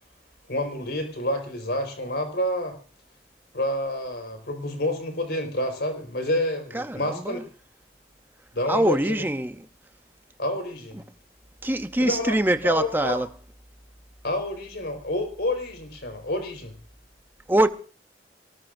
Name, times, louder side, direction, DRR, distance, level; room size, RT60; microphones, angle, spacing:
voice 1, 0.5-2.8 3.5-7.4 8.5-9.1 10.4-11.0 12.0-12.4 12.6-13.2 14.2-16.7, left 1 dB, 65° left, 4.5 m, -28 dB
voice 2, 6.7-7.4 8.7-9.6 11.0-11.1 11.6-13.3 17.5-17.7, right 1 dB, 10° right, 0.7 m, -23 dB
24.0 x 19.0 x 2.6 m
head